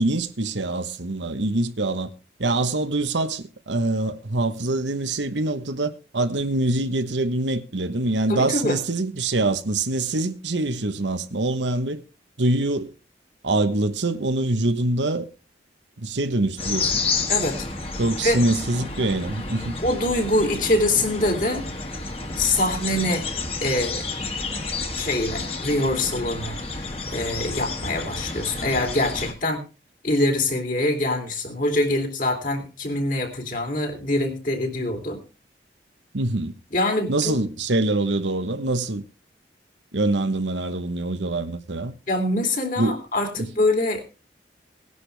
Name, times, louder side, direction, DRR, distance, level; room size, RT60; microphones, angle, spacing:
voice 1, 0.0-2.1 2.4-12.0 12.4-12.9 13.4-15.3 16.0-17.0 18.0-19.8 36.1-36.5 37.1-39.0 39.9-41.9 42.8-43.0, right 2 dB, 90° right, 1.2 m, -24 dB
voice 2, 8.3-8.8 17.3-17.7 18.2-18.4 19.8-21.7 22.4-23.2 23.6-24.1 24.9-26.6 27.1-29.6 30.0-35.2 36.7-37.3 42.1-44.0, left 1 dB, 50° left, 3.1 m, -24 dB
sound 1, 16.6-29.3, left 3 dB, 35° left, 1.9 m, -30 dB
18.0 x 11.0 x 3.4 m
head